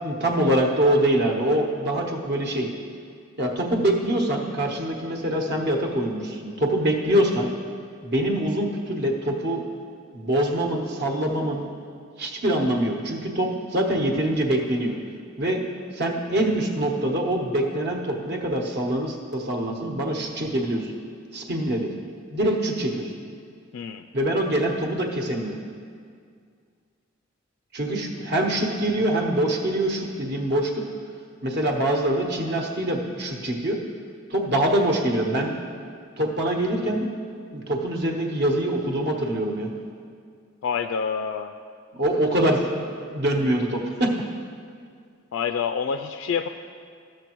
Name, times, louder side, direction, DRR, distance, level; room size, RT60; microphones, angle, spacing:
voice 1, 0.0-2.7 3.4-7.5 8.0-9.6 10.1-11.7 12.2-14.9 15.4-15.6 15.9-20.9 21.3-21.9 22.3-23.1 24.1-25.6 27.7-30.9 31.4-33.8 34.3-35.6 36.2-37.1 37.5-39.7 41.9-42.8 43.1-44.1, right 1 dB, 55° right, 1 dB, 1.0 m, -24 dB
voice 2, 23.7-24.0 40.6-41.5 45.3-46.5, left 6 dB, 70° left, 7 dB, 0.3 m, -27 dB
14.5 x 6.4 x 3.0 m, 2.2 s
head